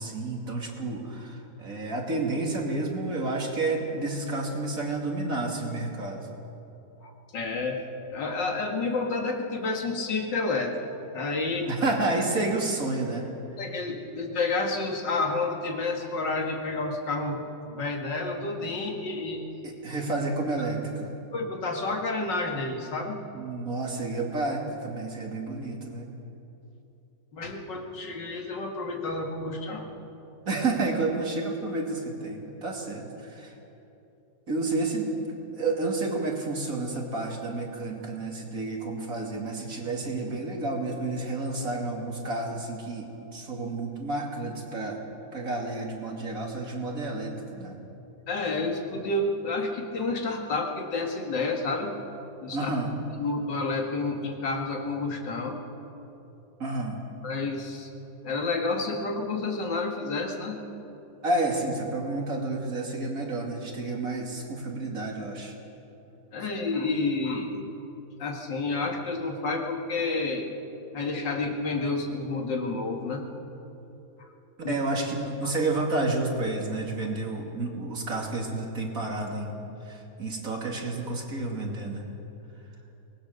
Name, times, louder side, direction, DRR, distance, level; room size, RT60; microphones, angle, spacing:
voice 1, 0.0-6.3 11.7-13.3 19.6-21.1 23.3-26.1 28.0-28.1 30.5-33.5 34.5-45.0 45.3-47.8 52.5-52.9 56.6-57.0 61.2-65.6 74.6-79.5 79.8-82.0, right 2 dB, 50° right, 0 dB, 3.0 m, -30 dB
voice 2, 7.0-7.8 8.1-10.8 11.1-11.7 13.6-19.5 20.6-20.7 21.3-23.3 27.3-29.9 48.3-52.0 52.4-52.7 53.2-55.6 57.2-57.9 58.2-60.7 66.3-67.5 68.2-70.5 70.9-73.3 74.2-74.3 74.6-74.8, left 3 dB, 90° left, 2 dB, 2.6 m, -30 dB
23.5 x 19.5 x 6.6 m, 2.9 s
omnidirectional pair, 1.9 m